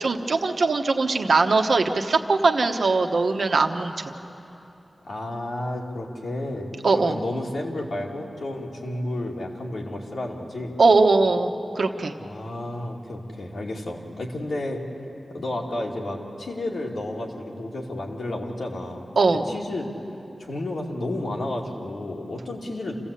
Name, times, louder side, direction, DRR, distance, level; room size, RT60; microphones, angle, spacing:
voice 1, 0.0-4.1 6.8-7.2 10.8-12.1 19.2-19.4, right 3 dB, 75° right, 5 dB, 1.1 m, -21 dB
voice 2, 5.0-10.8 12.2-14.8 15.3-19.9 20.4-22.9, left 1 dB, 90° left, -2 dB, 2.7 m, -31 dB
27.0 x 15.5 x 8.5 m, 2.9 s
wide cardioid pair, 110°, 0 cm